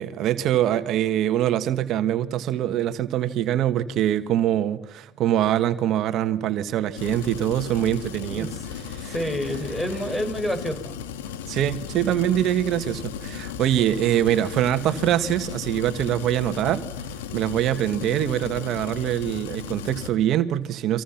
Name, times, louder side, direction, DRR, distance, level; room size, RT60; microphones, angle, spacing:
voice 1, 0.0-8.5 8.9-9.1 11.5-16.9 17.3-21.0, right 11 dB, 60° right, 10 dB, 1.6 m, -24 dB
sound 1, 6.9-20.1, left 8 dB, 85° left, 2.2 m, -36 dB
voice 2, 8.3-8.7 9.0-10.9, equal, 10° left, 8 dB, 6.4 m, -29 dB
30.0 x 26.0 x 6.0 m, 0.85 s
hypercardioid pair, 65°, 0 cm